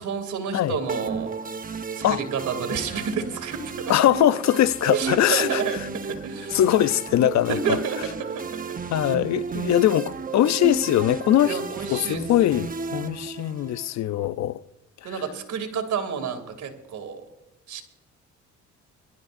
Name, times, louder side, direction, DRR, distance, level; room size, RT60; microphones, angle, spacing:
voice 1, 0.0-1.4 1.9-3.9 4.9-6.6 7.5-8.8 11.5-12.2 15.0-17.2 17.7-17.8, right 6 dB, 70° right, 2.8 m, -30 dB
sound 1, 0.9-13.9, right 5 dB, 30° right, 1.0 m, -33 dB
voice 2, 3.9-5.6 6.5-7.8 8.9-11.6 11.9-14.6 15.1-15.2, left 12 dB, 65° left, 0.6 m, -21 dB
24.5 x 12.5 x 2.6 m
cardioid pair, 90°, 30 cm